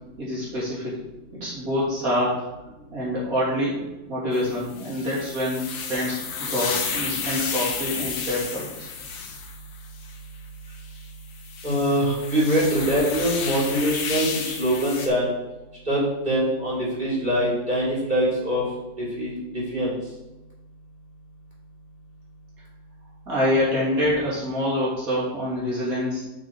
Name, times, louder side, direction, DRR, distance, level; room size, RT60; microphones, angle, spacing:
voice 1, 0.2-1.0 1.3-2.4 2.9-3.8 4.1-8.9 23.3-26.2, left 1 dB, 45° right, -7 dB, 3.3 m, -26 dB
sound 1, 4.3-10.2 10.8-10.9 11.3-15.1, left 5 dB, 75° left, 1.6 m, -32 dB
voice 2, 11.6-15.3 15.8-18.7 19.0-19.9, equal, 25° right, -7 dB, 3.2 m, -23 dB
6.9 x 5.9 x 4.4 m, 1.0 s
omnidirectional pair, 2.1 m